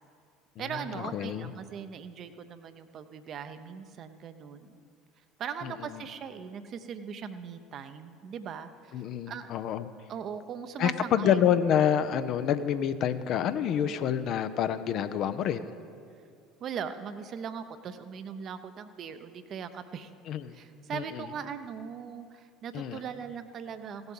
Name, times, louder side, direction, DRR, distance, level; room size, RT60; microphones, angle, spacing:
voice 1, 0.6-4.8 5.4-9.5 10.1-11.4 16.6-20.1 20.5-24.1, right 7 dB, 45° right, 10 dB, 0.7 m, -40 dB
voice 2, 1.1-1.5 8.9-9.9 10.8-15.7 20.3-20.5 20.9-21.2 22.7-23.0, left 9 dB, 50° left, 11 dB, 0.5 m, -27 dB
16.5 x 7.9 x 5.5 m, 2.3 s
figure-of-eight pair, 65°, 0 cm